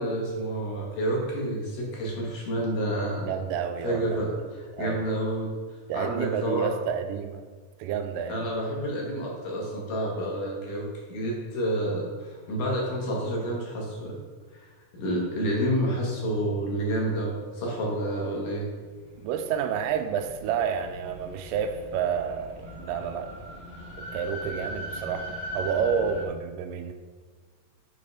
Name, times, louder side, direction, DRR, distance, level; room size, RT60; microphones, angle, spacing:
voice 1, 0.0-3.3 3.8-5.6 5.9-6.7 8.3-14.2 14.6-14.7 14.9-18.7, right 1 dB, 70° left, -2 dB, 3.1 m, -29 dB
voice 2, 3.3-4.3 4.7-5.1 5.9-7.4 7.8-8.4 19.2-23.3 24.0-26.9, right 7 dB, 85° right, 7 dB, 2.2 m, -30 dB
sound 1, 18.8-26.2, equal, 25° right, 0.9 m, -40 dB
6.5 x 5.1 x 5.4 m, 1.5 s
omnidirectional pair, 3.9 m